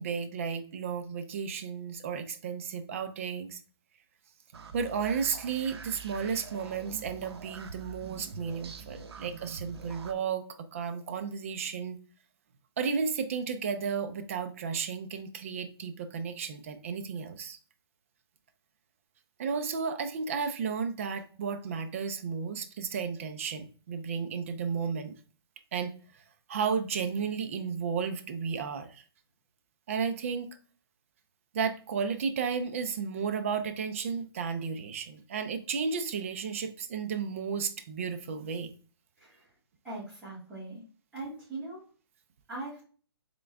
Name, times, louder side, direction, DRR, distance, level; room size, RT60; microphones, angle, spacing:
voice 1, 0.0-3.6 4.7-10.5 10.7-12.0 12.8-17.6 19.4-25.1 25.7-25.9 26.5-29.0 29.9-30.5 31.5-38.7, right 6 dB, 30° right, 0.4 m, -33 dB
sound 1, 4.5-10.1, right 4 dB, 75° right, 0.6 m, -45 dB
voice 2, 39.8-40.8 41.1-41.8 42.5-42.8, right 2 dB, 10° right, 1.8 m, -40 dB
3.7 x 3.4 x 3.2 m
hypercardioid pair, 165°, 14 cm